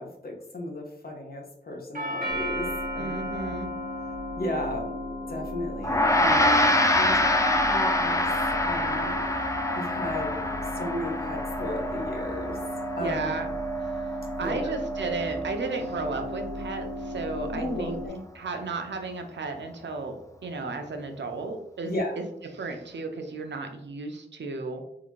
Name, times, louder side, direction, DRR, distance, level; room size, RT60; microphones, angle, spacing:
voice 1, 0.0-2.7 2.9-3.5 4.4-4.9 5.3-8.2 8.6-9.1 9.7-12.6 13.0-13.3 14.4-14.6 17.5-18.2 21.8-22.2, left 1 dB, 60° left, 0 dB, 0.9 m, -34 dB
Doorbell, 1.9-10.0, equal, 50° right, 1.2 m, -38 dB
sound 1, 2.3-18.1, equal, 15° right, 1.3 m, -35 dB
voice 2, 2.9-3.7 13.0-13.5 13.8-14.0 14.4-18.0 18.3-24.8, right 3 dB, 85° right, 5 dB, 0.6 m, -34 dB
Gong, 5.8-15.4, left 1 dB, 15° left, 0.4 m, -26 dB
3.7 x 2.5 x 3.0 m, 0.76 s
wide cardioid pair, 70°, 18 cm